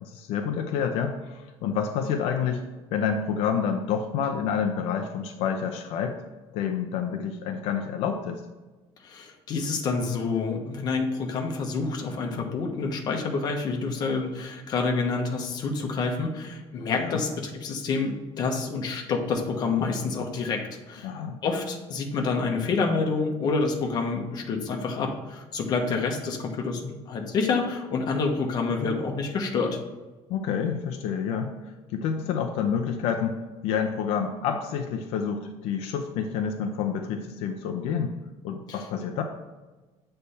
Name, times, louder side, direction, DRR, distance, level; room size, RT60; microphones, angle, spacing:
voice 1, 0.0-2.6 2.9-6.2 6.5-8.4 17.0-17.2 21.0-21.4 30.3-31.5 31.9-38.1 38.4-39.2, left 7 dB, 75° left, 4 dB, 0.6 m, -28 dB
voice 2, 9.0-20.6 20.9-21.1 21.4-29.8 38.7-38.8, left 4 dB, 40° left, 2 dB, 1.0 m, -28 dB
8.2 x 3.3 x 5.5 m, 1.2 s
cardioid pair, 170°, 11 cm